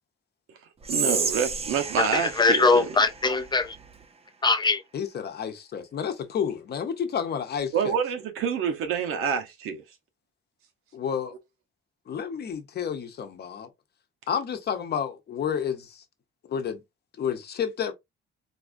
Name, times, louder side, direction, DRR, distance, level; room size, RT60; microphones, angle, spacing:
Whispering, 0.8-4.0, right 5 dB, 30° right, 0.6 m, -32 dB
voice 1, 0.9-3.1 7.7-9.8, right 7 dB, 90° right, 1.0 m, -27 dB
voice 2, 2.0-3.8 4.4-4.8, left 3 dB, 20° left, 0.5 m, -22 dB
voice 3, 4.9-7.9 10.9-11.3 12.1-13.7 14.3-15.9 16.5-16.8 17.2-17.9, left 7 dB, 50° left, 0.8 m, -30 dB
4.1 x 2.4 x 2.5 m
cardioid pair, 130°, 21 cm